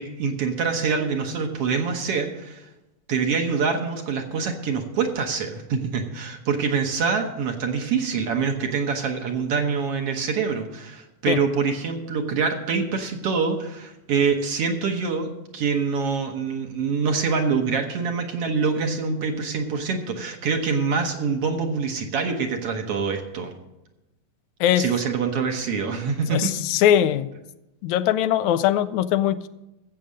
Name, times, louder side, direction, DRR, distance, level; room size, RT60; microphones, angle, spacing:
voice 1, 0.0-2.7 3.1-23.5 24.8-26.5, right 5 dB, 60° right, 4 dB, 1.9 m, -25 dB
voice 2, 26.3-27.3 27.8-29.5, left 11 dB, 80° left, 12 dB, 1.9 m, -21 dB
14.0 x 7.8 x 6.3 m, 0.94 s
omnidirectional pair, 3.3 m